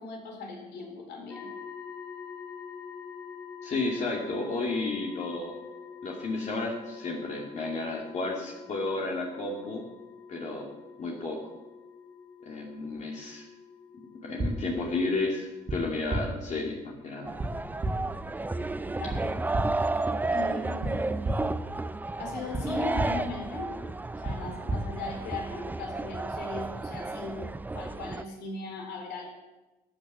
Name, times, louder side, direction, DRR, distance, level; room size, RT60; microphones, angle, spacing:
voice 1, 0.0-1.5 19.0-19.3 20.3-21.3 22.2-23.7 24.2-29.2, left 3 dB, 75° left, 2 dB, 4.0 m, -38 dB
sound 1, 1.3-18.2, left 6 dB, 10° left, 1.7 m, -47 dB
voice 2, 3.6-5.5 6.0-9.8 10.3-10.7 11.0-11.4 12.4-13.5 14.2-17.3, left 3 dB, 45° left, -1 dB, 2.5 m, -32 dB
sound 2, 14.4-14.5 15.7-15.8 16.1-16.2 17.4-17.5 17.8-17.9 19.1-19.2 19.5-19.6 20.8-20.9 21.2-21.3 22.5-22.6 22.9-23.1 24.2-24.3 24.7-24.8, right 2 dB, 30° right, 2.4 m, -29 dB
sound 3, 17.3-28.2, right 2 dB, 10° right, 0.5 m, -32 dB
14.0 x 9.0 x 7.3 m, 1.1 s
cardioid pair, 110°, 17 cm